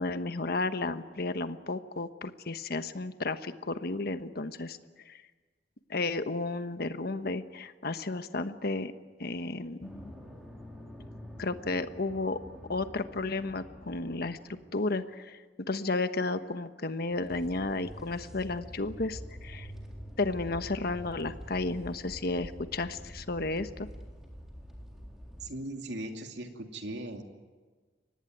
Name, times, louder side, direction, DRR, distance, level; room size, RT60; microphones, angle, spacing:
voice 1, 0.0-4.8 5.1-5.2 5.9-8.9 9.2-10.1 11.4-12.4 12.7-15.4 15.7-19.7 20.2-23.9, left 3 dB, 60° left, 10 dB, 1.2 m, -33 dB
sound 1, 9.8-14.9 17.0-25.5, equal, ahead, 4.0 m, -46 dB
voice 2, 25.4-27.2, right 1 dB, 75° right, 4 dB, 2.7 m, -38 dB
24.5 x 19.0 x 9.4 m, 1.4 s
head